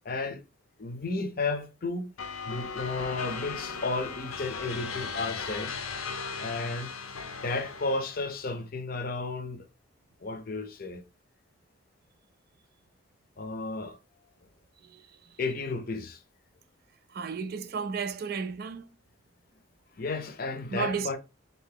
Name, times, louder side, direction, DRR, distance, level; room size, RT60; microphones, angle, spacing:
voice 1, 0.0-0.4 0.8-2.1 2.5-5.7 6.4-6.9 7.4-9.7 10.2-11.0 13.4-14.0 15.4-16.2 20.0-21.2, left 3 dB, 45° left, 0.6 m, -33 dB
sound 1, 2.2-8.4, left 5 dB, 85° left, 0.6 m, -37 dB
voice 2, 17.1-18.9 20.7-21.2, right 5 dB, 45° right, 0.3 m, -33 dB
3.9 x 2.8 x 3.7 m
head